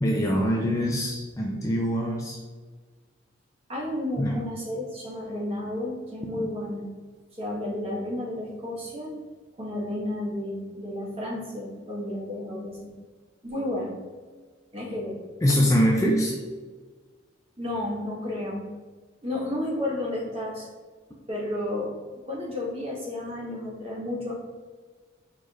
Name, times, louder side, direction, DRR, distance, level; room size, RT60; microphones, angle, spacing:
voice 1, 0.0-2.4 4.2-4.4 6.4-6.5 15.4-16.4, equal, 15° left, -1 dB, 0.4 m, -24 dB
voice 2, 3.7-6.9 7.3-9.1 9.6-12.9 13.4-14.0 14.7-15.2 17.6-18.7 19.2-20.7 21.3-21.9 22.2-24.3, left 1 dB, 30° right, -5 dB, 1.5 m, -32 dB
4.8 x 4.4 x 2.5 m, 1.5 s
head